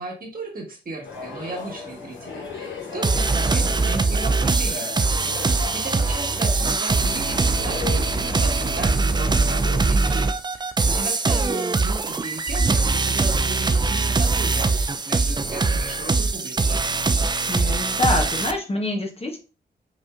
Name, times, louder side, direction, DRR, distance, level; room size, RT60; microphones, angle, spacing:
voice 1, 0.0-17.1, right 2 dB, 50° right, -1 dB, 1.5 m, -36 dB
sound 1, 1.0-9.8, left 4 dB, 80° left, 1.1 m, -36 dB
sound 2, 3.0-18.5, right 3 dB, 25° right, 0.4 m, -22 dB
voice 2, 17.5-19.4, left 2 dB, 30° left, 1 dB, 0.9 m, -26 dB
5.2 x 2.6 x 2.4 m, 0.34 s
cardioid pair, 55°, 19 cm